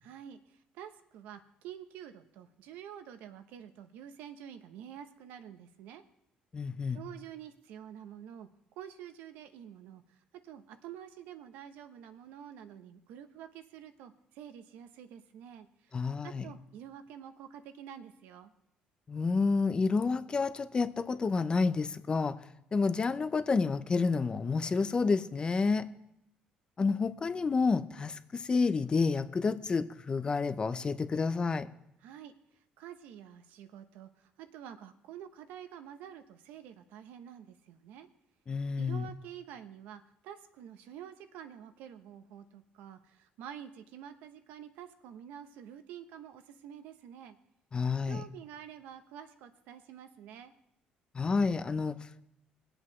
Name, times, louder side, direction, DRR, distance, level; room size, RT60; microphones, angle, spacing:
voice 1, 0.0-6.0 6.9-8.5 8.8-10.2 10.4-16.0 16.2-18.5 32.0-32.3 32.8-38.1 38.8-47.4 48.1-50.5, right 9 dB, 85° right, 8 dB, 0.9 m, -48 dB
voice 2, 6.5-7.0 15.9-16.5 19.1-22.4 22.7-25.9 26.8-31.7 38.5-39.1 47.7-48.2 51.1-52.2, left 4 dB, 30° left, 12 dB, 0.7 m, -29 dB
21.0 x 8.0 x 3.2 m, 0.78 s
cardioid pair, 95°, 3 cm